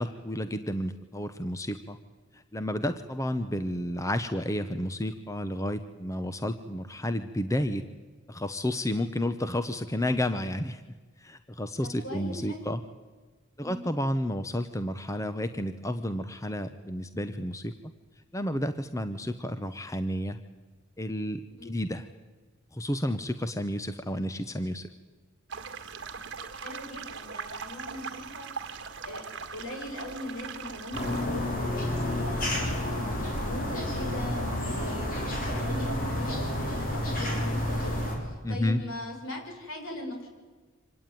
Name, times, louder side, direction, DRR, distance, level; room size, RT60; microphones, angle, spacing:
voice 1, 0.0-2.0 2.3-7.8 8.3-10.8 11.2-12.8 13.6-17.7 18.3-20.4 21.0-22.1 22.7-24.9 38.4-38.8, left 1 dB, 15° left, 10 dB, 0.9 m, -31 dB
voice 2, 11.8-12.7 13.6-13.9 21.5-21.8 26.5-28.5 29.0-29.2 29.5-40.3, left 1 dB, 75° left, 2 dB, 6.5 m, -40 dB
sound 1, 25.5-31.3, right 5 dB, 55° right, 1.9 m, -40 dB
sound 2, 30.9-38.2, left 1 dB, 40° left, 6.1 m, -30 dB
25.5 x 18.5 x 9.3 m, 1.4 s
head